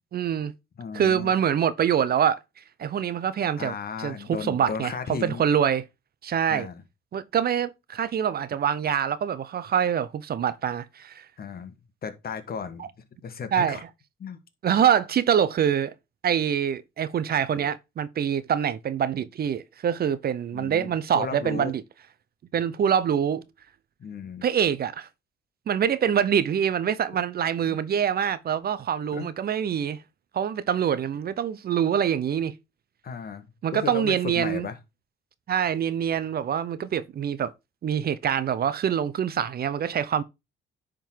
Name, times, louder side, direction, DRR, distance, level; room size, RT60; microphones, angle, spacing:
voice 1, 0.1-0.5 0.9-2.4 2.8-5.8 6.2-6.7 7.1-11.2 12.8-12.9 13.5-13.8 14.6-15.9 16.2-21.8 22.5-23.4 24.4-25.1 25.7-30.0 30.3-32.5 33.6-34.7 35.5-37.5 37.8-40.2, right 8 dB, 50° right, 0.7 m, -25 dB
voice 2, 0.8-1.3 3.6-5.4 6.5-6.8 11.4-11.7 12.0-12.9 13.2-13.8 14.2-14.4 20.5-21.7 24.0-24.4 27.7-27.8 29.1-29.3 33.0-34.8, left 6 dB, 50° left, 1.4 m, -35 dB
10.0 x 3.8 x 4.5 m
cardioid pair, 90°, 20 cm